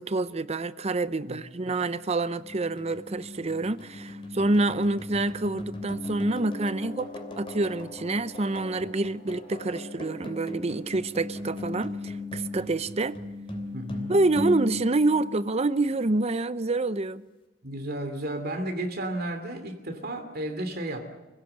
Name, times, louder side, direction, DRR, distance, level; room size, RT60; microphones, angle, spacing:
voice 1, 0.0-7.1 7.4-13.2 14.1-17.2, right 2 dB, 35° right, 0.6 m, -27 dB
voice 2, 1.2-1.7 13.7-14.1 17.6-21.0, right 1 dB, 50° right, 2.7 m, -33 dB
sound 1, 1.8-16.0, left 2 dB, 25° left, 3.2 m, -38 dB
27.0 x 17.0 x 7.9 m
head